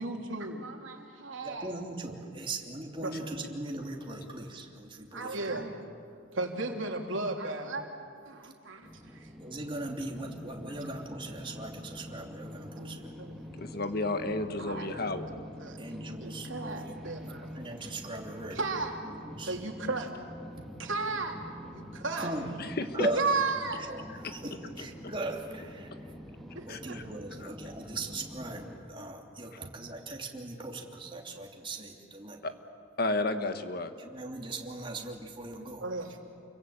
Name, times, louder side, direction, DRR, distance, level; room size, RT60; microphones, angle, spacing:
voice 1, 0.0-1.7 3.0-3.3 5.1-5.8 6.0-7.9 8.2-9.3 10.6-10.7 12.8-13.4 14.6-14.9 15.3-15.8 16.2-17.5 18.5-19.0 19.4-20.1 20.8-21.4 21.7-22.3 23.1-23.9 26.5-27.0 35.8-36.2, right 3 dB, 80° right, 2 dB, 3.2 m, -35 dB
voice 2, 1.4-5.7 9.4-13.1 15.8-17.0 17.5-18.6 19.0-19.6 22.2-22.5 22.9-23.3 23.7-25.9 26.7-32.4 34.0-35.8, right 2 dB, 25° right, 1 dB, 3.0 m, -39 dB
sound 1, 8.8-28.8, equal, ahead, 2.4 m, -45 dB
voice 3, 13.6-15.3 22.6-23.1 24.2-24.3 24.8-24.9 26.7-27.0 27.4-27.5 29.5-29.6 32.4-32.5 33.0-33.9, left 2 dB, 50° left, 8 dB, 1.4 m, -32 dB
29.5 x 23.0 x 8.8 m, 2.3 s
head